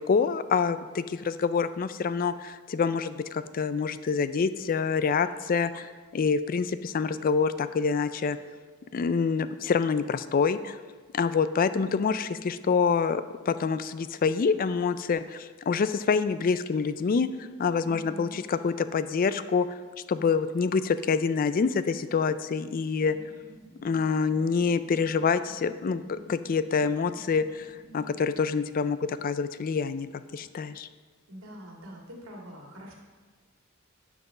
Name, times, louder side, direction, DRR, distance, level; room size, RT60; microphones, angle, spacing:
voice 1, 0.0-8.4 8.9-10.8 11.1-19.8 20.1-23.2 23.8-27.7 27.9-30.9, left 5 dB, 40° left, 13 dB, 0.3 m, -26 dB
voice 2, 17.9-18.4 31.3-32.9, equal, 90° right, -1 dB, 2.1 m, -44 dB
sound 1, 23.0-28.2, right 2 dB, 25° left, 1.9 m, -52 dB
9.2 x 6.0 x 5.3 m, 1.4 s
head